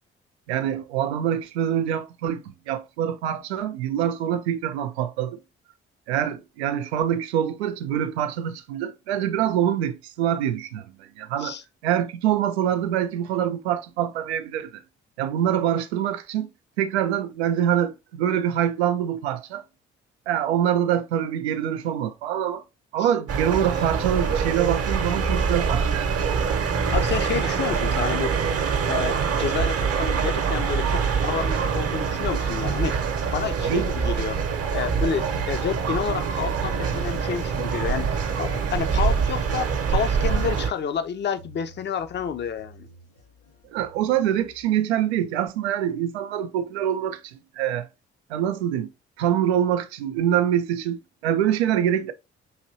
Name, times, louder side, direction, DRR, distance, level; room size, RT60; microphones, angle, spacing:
voice 1, 0.5-5.4 6.1-11.6 11.8-14.8 15.2-16.5 16.8-19.6 20.3-22.6 22.9-26.1 33.7-33.9 43.7-47.9 48.3-48.9 49.2-52.1, right 10 dB, 80° right, 0.5 m, -25 dB
sound 1, 23.3-40.7, right 6 dB, 45° right, 0.8 m, -25 dB
voice 2, 26.9-28.3 28.8-33.0 33.3-34.4 34.7-42.9, left 7 dB, 35° left, 0.5 m, -29 dB
sound 2, 40.1-44.7, right 1 dB, 75° left, 2.4 m, -45 dB
5.6 x 2.9 x 2.7 m
figure-of-eight pair, 40°, 33 cm